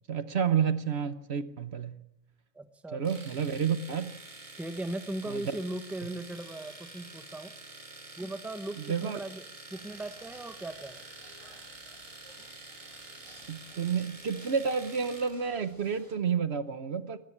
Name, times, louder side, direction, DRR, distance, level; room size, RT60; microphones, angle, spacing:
voice 1, 0.1-2.0 2.9-4.1 5.3-5.4 8.8-9.2 13.5-17.2, right 7 dB, 55° right, 12 dB, 1.1 m, -30 dB
voice 2, 2.5-3.2 4.5-7.5 8.2-11.1, right 1 dB, ahead, 9 dB, 1.0 m, -38 dB
Domestic sounds home sounds, 3.0-15.4, right 2 dB, 90° right, 3.6 m, -48 dB
sound 1, 9.7-16.2, equal, 20° right, 6.5 m, -57 dB
19.5 x 14.5 x 9.9 m, 0.91 s
omnidirectional pair, 1.3 m